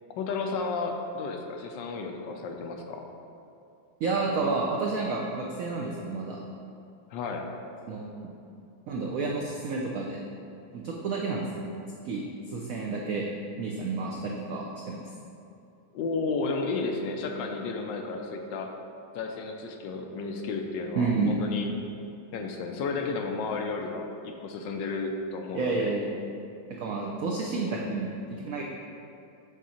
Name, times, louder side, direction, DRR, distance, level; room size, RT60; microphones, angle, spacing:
voice 1, 0.2-3.0 7.1-7.5 15.9-18.7 19.1-21.7 22.3-25.9, left 4 dB, 75° left, 3 dB, 1.2 m, -32 dB
voice 2, 4.0-6.4 7.9-8.3 8.9-10.2 10.7-11.7 12.0-13.3 13.6-15.0 21.0-21.4 25.5-26.1 26.7-28.6, right 3 dB, 80° right, -1 dB, 0.7 m, -30 dB
7.3 x 3.7 x 4.2 m, 2.6 s
omnidirectional pair, 2.1 m